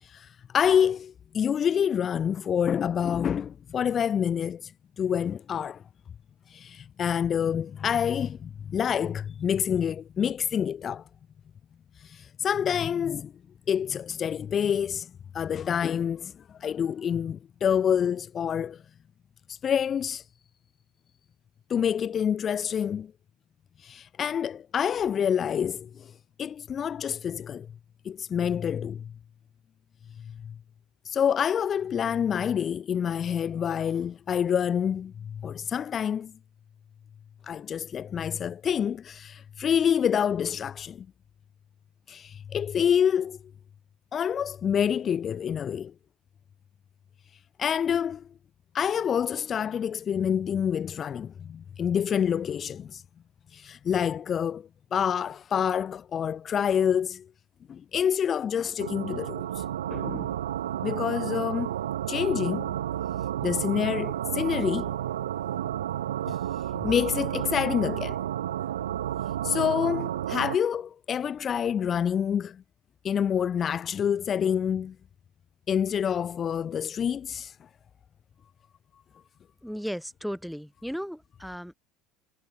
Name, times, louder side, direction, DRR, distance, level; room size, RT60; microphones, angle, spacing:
voice 1, 0.0-5.8 6.5-11.0 12.0-13.3 13.7-18.8 19.5-20.2 21.7-23.1 23.8-27.7 28.0-29.1 30.2-30.5 31.0-36.3 37.4-41.1 42.1-43.4 44.1-45.9 47.6-48.3 48.7-53.0 53.5-57.3 57.7-59.6 59.9-60.3 60.8-61.7 62.1-62.7 63.4-64.9 66.3-66.4 66.8-68.2 69.4-72.6 73.0-74.9 75.7-77.7, left 8 dB, 35° left, 0.7 m, -27 dB
sound 1, 58.8-70.6, right 11 dB, 85° right, 0.3 m, -31 dB
voice 2, 79.6-81.7, equal, ahead, 3.3 m, -35 dB
hypercardioid pair, 80°, 0 cm